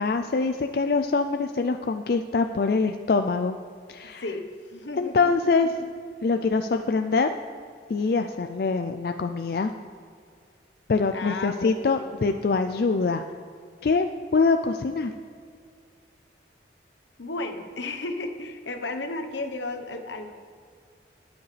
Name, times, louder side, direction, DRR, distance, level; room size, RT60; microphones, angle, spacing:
voice 1, 0.0-3.6 3.9-4.2 5.0-5.7 6.2-7.4 7.9-9.7 10.9-13.2 13.8-15.1, left 4 dB, 55° left, 6 dB, 0.4 m, -24 dB
voice 2, 4.2-5.3 5.8-5.9 11.1-12.2 17.2-20.3, left 2 dB, 85° left, 6 dB, 1.0 m, -34 dB
21.0 x 7.1 x 3.3 m, 2.2 s
head